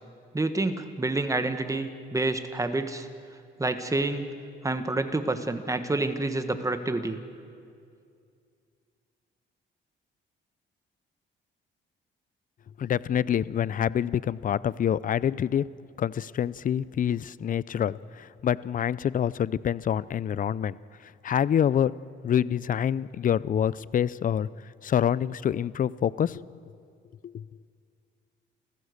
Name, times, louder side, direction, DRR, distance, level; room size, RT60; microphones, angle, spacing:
voice 1, 0.3-3.1 3.6-4.3 4.6-7.2, right 2 dB, 15° right, 9 dB, 1.6 m, -28 dB
voice 2, 12.8-15.6 16.0-20.8 21.2-21.9 22.2-24.5 24.8-26.4 27.2-27.4, left 9 dB, 45° left, 20 dB, 0.5 m, -26 dB
29.5 x 15.0 x 6.6 m, 2.3 s
cardioid pair, 90°, 20 cm